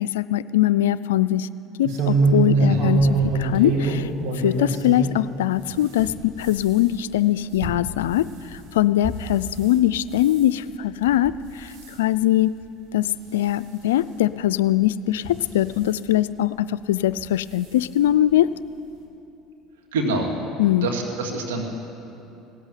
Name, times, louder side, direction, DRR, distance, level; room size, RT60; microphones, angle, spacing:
voice 1, 0.0-1.5 1.8-4.1 4.3-12.6 12.9-18.5 20.6-20.9, left 13 dB, 85° left, 16 dB, 0.3 m, -22 dB
sound 1, 1.8-5.2 5.6-9.8 10.1-10.5 11.0-11.4 11.7-12.0 12.6-12.7 13.0-13.1 14.3-14.4 15.1-15.9 17.1-17.3 17.6-17.7 18.1-18.2, right 3 dB, 65° right, 2.3 m, -25 dB
voice 2, 19.9-20.3 20.8-21.6, right 2 dB, 85° right, 2 dB, 2.1 m, -26 dB
17.5 x 8.1 x 9.6 m, 2.9 s
hypercardioid pair, 80°, 0 cm